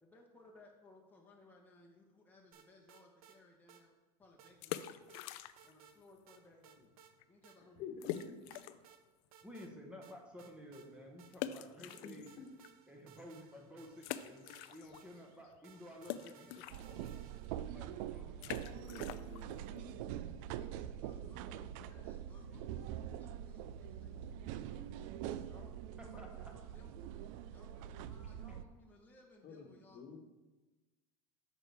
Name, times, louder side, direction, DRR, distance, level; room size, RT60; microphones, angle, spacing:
voice 1, 0.0-3.9 4.2-5.1 5.6-7.0 7.3-8.1 21.0-24.2 25.5-25.8 26.0-27.1 27.5-30.1, left 2 dB, 10° left, -2 dB, 1.1 m, -62 dB
sound 1, 2.5-3.4 3.7-3.8 4.4-5.3 5.6-6.0 6.3-7.1 7.4-7.6 8.1-9.0 9.3-9.7 10.0-11.6 11.9-17.7, right 9 dB, 90° right, 0.8 m, -62 dB
sound 2, 4.5-5.9 6.1-6.2 6.8-6.9 7.2-7.3 8.0-8.9 9.4-9.5 11.3-12.7 13.2-13.3 14.0-15.2 15.4-21.0, left 12 dB, 65° left, 0.5 m, -45 dB
voice 2, 7.7-8.4 11.8-12.1 12.4-12.5 18.5-20.0 29.4-30.2, left 6 dB, 45° left, 4 dB, 1.3 m, -50 dB
voice 3, 9.4-12.3 12.9-17.2 17.7-18.6 22.4-22.6 26.0-26.3, equal, 5° right, 0 dB, 1.2 m, -53 dB
sound 3, 16.7-28.6, right 10 dB, 70° right, 0.4 m, -44 dB
8.9 x 6.4 x 3.5 m, 1.2 s
supercardioid pair, 120°, 18 cm